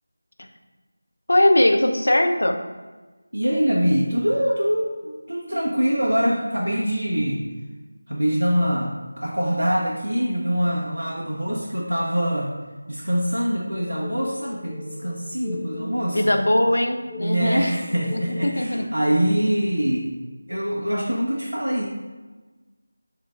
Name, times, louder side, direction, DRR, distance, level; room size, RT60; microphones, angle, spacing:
voice 1, 1.3-2.6 15.8-17.7 18.1-18.9, left 1 dB, 65° left, 5 dB, 0.6 m, -20 dB
voice 2, 3.3-7.4 8.1-12.5 12.9-16.3 17.2-20.1 20.5-21.9, equal, 85° right, -4 dB, 0.8 m, -24 dB
sound 1, 13.8-18.6, left 5 dB, 15° left, 0.5 m, -39 dB
3.7 x 3.3 x 3.7 m, 1.3 s
figure-of-eight pair, 165°, 0 cm